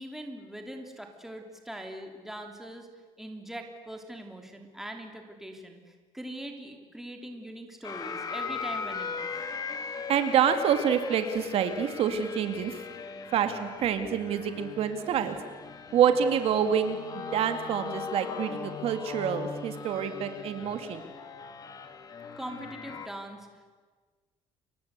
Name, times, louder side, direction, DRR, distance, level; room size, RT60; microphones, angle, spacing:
voice 1, 0.0-2.9 3.2-5.8 6.1-9.3 22.4-23.7, right 1 dB, 5° right, 3 dB, 3.1 m, -42 dB
sound 1, 7.8-23.1, left 5 dB, 30° left, 1.9 m, -39 dB
voice 2, 10.1-12.7 13.3-15.4 15.9-21.0, right 8 dB, 55° right, 8 dB, 2.3 m, -27 dB
30.0 x 24.0 x 8.3 m, 1.4 s
cardioid pair, 165°, 12 cm